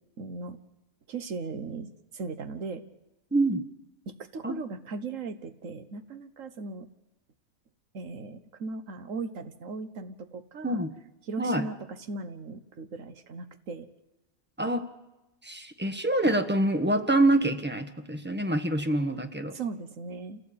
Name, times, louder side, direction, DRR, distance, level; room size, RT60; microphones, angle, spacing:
voice 1, 0.2-0.6 1.1-2.8 4.1-6.9 7.9-10.8 11.2-11.8 12.1-13.9 19.5-20.4, right 4 dB, 65° right, 10 dB, 1.6 m, -38 dB
voice 2, 3.3-3.6 4.4-4.5 10.6-10.9 11.4-11.7 14.6-14.9 15.4-19.5, right 1 dB, 10° right, 7 dB, 1.4 m, -26 dB
27.5 x 16.5 x 8.7 m, 1.0 s
omnidirectional pair, 1.5 m